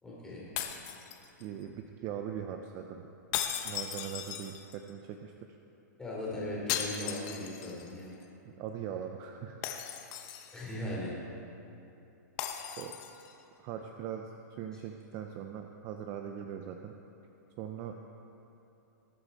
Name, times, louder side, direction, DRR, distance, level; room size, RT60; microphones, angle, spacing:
voice 1, 0.0-0.5 6.0-8.1 10.5-11.1, left 1 dB, 5° left, -7 dB, 3.4 m, -38 dB
sound 1, 0.6-1.6 3.3-4.9 6.7-7.9 8.2-8.3 9.6-10.7 12.4-13.3, left 10 dB, 30° left, 0.9 m, -37 dB
voice 2, 1.4-3.1 3.6-5.3 8.5-9.6 12.8-13.0 13.6-14.3 14.6-17.0 17.6-18.2, right 9 dB, 30° right, 5 dB, 0.5 m, -40 dB
21.0 x 8.2 x 4.3 m, 2.9 s
hypercardioid pair, 160°, 10 cm